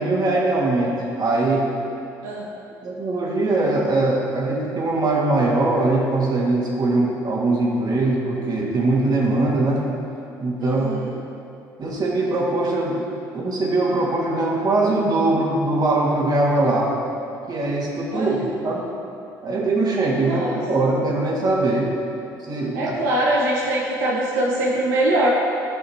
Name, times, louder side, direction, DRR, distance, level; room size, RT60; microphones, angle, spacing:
voice 1, 0.0-1.7 2.8-9.8 10.4-11.0 11.8-13.0 13.3-16.9 17.5-18.9 19.4-21.9 22.4-23.0, right 2 dB, 45° right, -4 dB, 2.0 m, -21 dB
voice 2, 10.6-11.1 18.1-18.3 20.2-20.6 22.7-25.3, right 1 dB, 85° right, -4 dB, 0.8 m, -22 dB
13.0 x 5.5 x 3.0 m, 2.6 s
hypercardioid pair, 65°, 10 cm